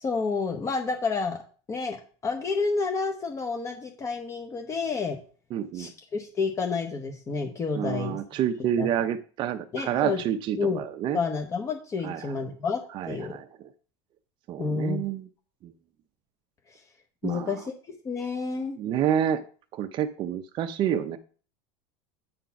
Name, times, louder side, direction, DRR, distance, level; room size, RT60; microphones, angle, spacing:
voice 1, 0.0-1.4 1.7-2.0 2.2-5.2 5.7-8.2 8.8-9.0 9.7-10.2 10.6-10.8 11.1-12.8 13.1-13.4 14.6-15.0 17.2-18.8, left 4 dB, 20° left, 3 dB, 0.9 m, -29 dB
voice 2, 5.5-5.9 7.7-11.2 12.0-12.3 12.9-13.5 14.5-15.3 15.6-15.7 17.2-17.6 18.8-19.4 19.7-21.2, right 10 dB, 35° right, 8 dB, 0.5 m, -28 dB
8.4 x 3.9 x 5.7 m, 0.40 s
supercardioid pair, 155°, 15 cm